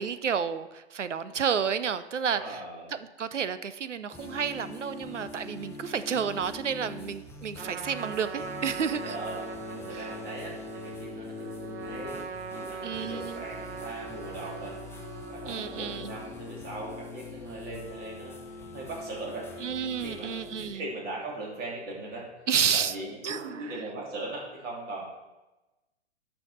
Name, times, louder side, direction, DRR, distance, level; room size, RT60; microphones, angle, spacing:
voice 1, 0.0-2.6 2.9-9.1 9.9-10.1 12.8-13.4 15.5-16.1 19.6-20.9 22.5-22.9 23.2-23.7, right 7 dB, 85° right, 13 dB, 0.7 m, -31 dB
voice 2, 2.2-2.9 9.0-12.2 12.5-14.8 15.3-19.5 20.0-22.3 22.7-25.0, right 2 dB, 25° right, -3 dB, 3.1 m, -39 dB
sound 1, 4.1-20.7, left 3 dB, 5° left, 0.9 m, -43 dB
Trumpet, 7.5-16.3, right 6 dB, 60° right, 1.1 m, -41 dB
11.5 x 5.7 x 4.2 m, 1.1 s
figure-of-eight pair, 115°, 35 cm